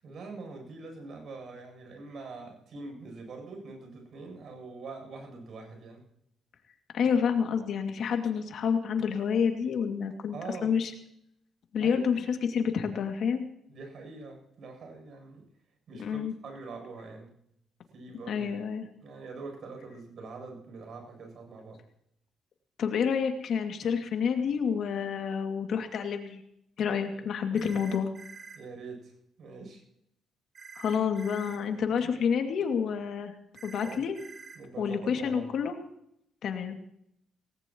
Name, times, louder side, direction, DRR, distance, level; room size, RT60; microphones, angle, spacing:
voice 1, 0.0-6.0 10.3-10.8 11.8-12.0 13.7-15.5 15.9-17.3 17.9-18.6 19.0-21.8 27.1-27.3 28.5-29.1 29.4-29.8 33.8-34.1 34.5-35.5, right 3 dB, 60° right, 3 dB, 8.0 m, -44 dB
voice 2, 6.9-10.4 10.6-10.9 11.7-13.4 16.0-16.3 18.3-18.9 22.8-26.4 26.8-28.1 30.8-33.3 33.6-34.1 34.8-35.8 36.4-36.8, left 6 dB, 65° left, 4 dB, 2.5 m, -28 dB
sound 1, 27.5-28.6 30.5-31.6 33.5-34.6, right 5 dB, 45° right, 4.3 m, -47 dB
19.0 x 19.0 x 3.1 m, 0.76 s
cardioid pair, 90°, 0 cm